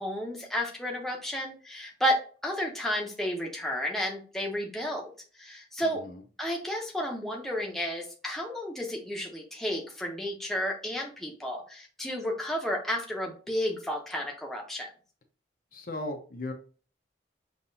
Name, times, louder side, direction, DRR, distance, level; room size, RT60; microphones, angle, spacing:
voice 1, 0.0-5.1 5.4-6.0 6.4-14.9, equal, ahead, -1 dB, 0.8 m, -32 dB
voice 2, 5.8-6.2 15.7-16.5, left 1 dB, 45° left, 4 dB, 0.6 m, -37 dB
5.5 x 2.9 x 2.7 m, 0.38 s
head